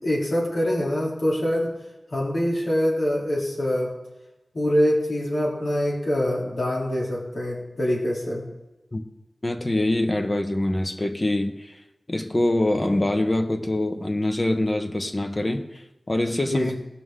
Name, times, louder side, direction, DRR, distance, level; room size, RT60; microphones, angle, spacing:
voice 1, 0.0-1.7 2.1-3.9 4.5-8.4 16.5-16.7, equal, 75° left, -5 dB, 3.1 m, -24 dB
voice 2, 9.4-11.8 12.1-16.7, left 1 dB, 30° left, 5 dB, 1.2 m, -24 dB
19.0 x 6.5 x 3.7 m, 1.0 s
wide cardioid pair, 70°, 0 cm